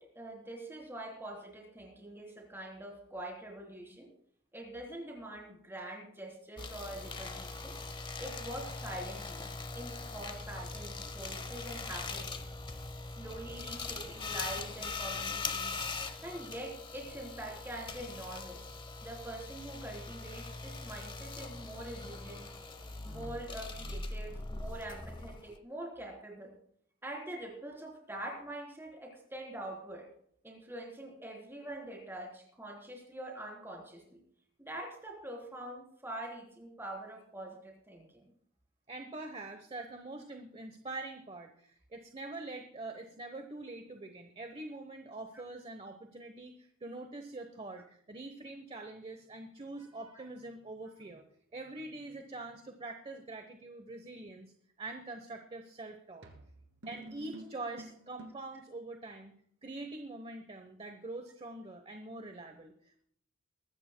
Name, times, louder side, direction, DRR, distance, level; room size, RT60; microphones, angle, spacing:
voice 1, 0.0-4.1 4.5-7.8 8.2-9.5 9.8-12.5 13.1-15.8 16.2-18.7 19.0-22.4 23.0-26.5 27.0-30.1 30.4-34.2 34.6-38.3, right 1 dB, 10° right, -1 dB, 3.5 m, -44 dB
sound 1, 6.6-25.6, left 3 dB, 20° left, 0.8 m, -41 dB
voice 2, 38.9-51.2 51.5-54.5 54.8-56.3 56.9-59.3 59.6-63.1, right 2 dB, 25° right, 5 dB, 0.9 m, -44 dB
sound 2, 55.3-55.6 56.2-58.6, right 1 dB, 65° right, 2.4 m, -50 dB
22.5 x 13.0 x 2.2 m, 0.65 s
head